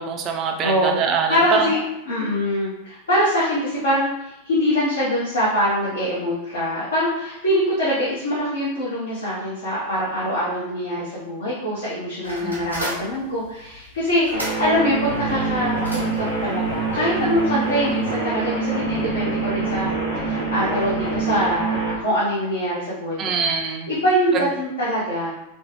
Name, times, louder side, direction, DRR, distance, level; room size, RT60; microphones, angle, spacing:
voice 1, 0.0-1.7 12.4-12.8 23.2-23.9, right 6 dB, 30° right, 4 dB, 0.4 m, -24 dB
voice 2, 0.6-0.9 1.3-19.9 20.2-23.2 23.9-25.3, equal, 70° left, -9 dB, 0.8 m, -23 dB
sound 1, 12.2-18.1, right 1 dB, 90° right, 0.8 m, -36 dB
sound 2, 14.3-21.9, right 4 dB, 90° left, 1.2 m, -25 dB
3.2 x 2.1 x 2.9 m, 0.89 s
figure-of-eight pair, 90°, 0 cm